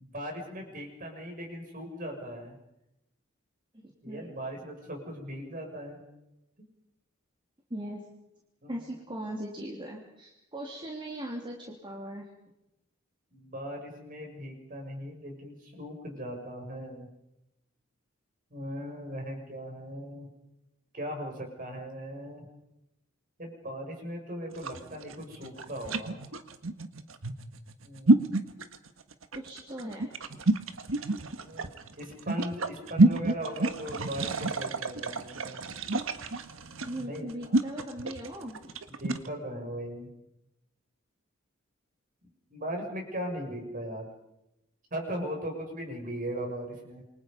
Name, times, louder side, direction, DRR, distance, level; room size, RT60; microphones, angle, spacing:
voice 1, 0.0-2.6 4.0-6.0 8.6-8.8 13.3-17.1 18.5-20.3 20.9-22.4 23.4-26.2 27.8-28.1 31.4-31.7 32.0-35.6 37.0-37.3 39.0-40.1 42.5-44.1 44.9-47.0, equal, 45° right, 2 dB, 6.6 m, -38 dB
voice 2, 3.8-4.3 7.7-8.0 8.7-12.3 29.3-30.1 36.8-38.7, right 1 dB, 25° right, -1 dB, 3.1 m, -39 dB
sound 1, 24.5-39.3, right 2 dB, 75° right, 1.5 m, -28 dB
27.5 x 24.0 x 5.4 m, 0.89 s
head